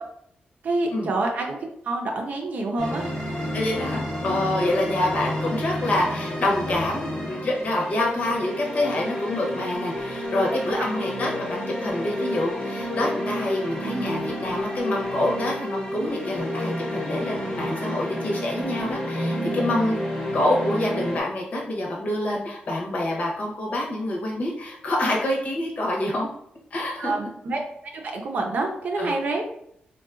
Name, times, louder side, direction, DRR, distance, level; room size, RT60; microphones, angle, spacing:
voice 1, 0.6-1.6 1.8-3.0 10.8-10.9 27.0-27.6 27.9-29.6, right 2 dB, 55° right, 2 dB, 0.6 m, -27 dB
sound 1, 2.8-21.2, equal, 15° left, 0.8 m, -30 dB
voice 2, 3.5-20.0 20.3-26.3 26.7-27.1 29.0-29.1, left 1 dB, 50° left, -2 dB, 0.8 m, -26 dB
3.6 x 2.3 x 2.4 m, 0.70 s
wide cardioid pair, 155°, 3 cm